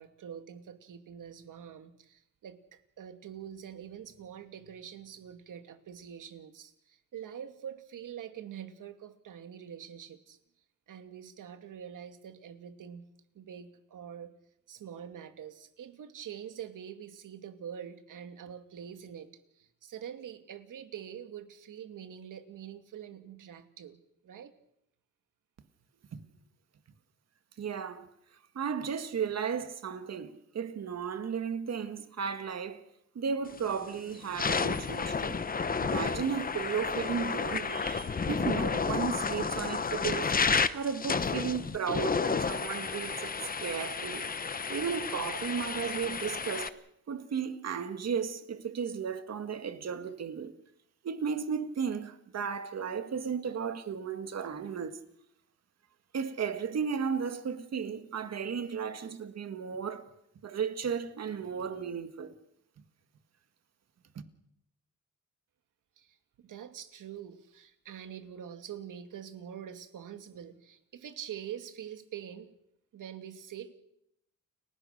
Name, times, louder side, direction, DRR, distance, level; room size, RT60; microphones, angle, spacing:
voice 1, 0.0-10.4 10.9-13.0 13.3-14.3 14.7-19.3 19.6-24.5 66.0-66.2 66.4-72.5 72.9-73.7, right 9 dB, 75° right, 2.4 m, -45 dB
voice 2, 27.6-28.1 28.6-32.8 33.2-35.4 35.8-40.3 40.7-43.3 43.6-44.3 44.7-46.8 47.1-50.5 51.0-55.0 56.1-60.1 60.4-62.3, right 6 dB, 55° right, 1.9 m, -34 dB
sound 1, 33.5-33.8 34.2-46.7, left 5 dB, 30° left, 0.9 m, -31 dB
30.0 x 17.0 x 6.7 m
wide cardioid pair, 145°, 31 cm